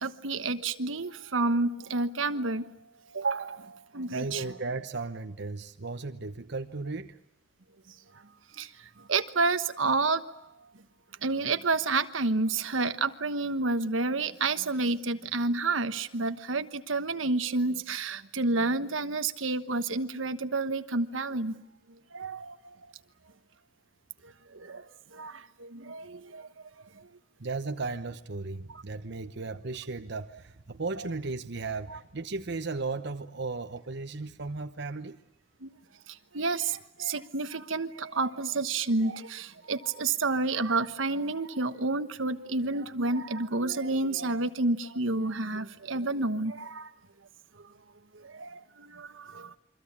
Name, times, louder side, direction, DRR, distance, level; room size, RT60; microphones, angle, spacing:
voice 1, 0.0-2.7 3.1-3.6 3.9-4.4 8.6-8.7 9.1-10.2 11.2-21.5 22.1-22.5 24.7-24.8 25.2-25.3 25.7-26.4 36.3-46.8 48.4-48.5 49.0-49.1, right 3 dB, 80° right, 10 dB, 1.3 m, -29 dB
voice 2, 4.1-7.2 27.4-35.2, right 3 dB, 60° right, 7 dB, 1.0 m, -35 dB
28.5 x 24.5 x 8.7 m, 0.80 s
head